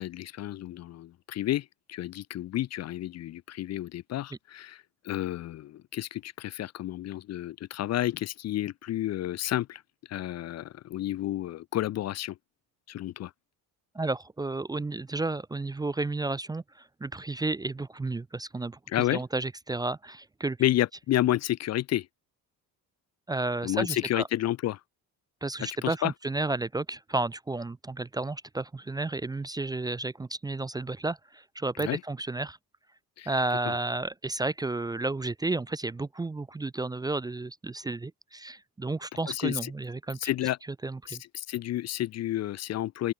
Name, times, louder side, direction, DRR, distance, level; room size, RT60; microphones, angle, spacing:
voice 1, 0.0-9.8 10.1-12.4 12.9-13.3 18.9-19.2 20.6-22.1 23.6-24.8 25.6-26.1 31.8-32.0 33.2-33.3 33.7-33.8 39.3-39.7 40.2-40.6 41.1-43.1, left 13 dB, 45° left, 0.7 m, -31 dB
voice 2, 13.9-18.8 19.1-20.6 23.3-24.2 25.4-32.6 33.3-40.3 40.8-41.2, right 2 dB, 10° right, 0.6 m, -32 dB
open air
cardioid pair, 175°, 36 cm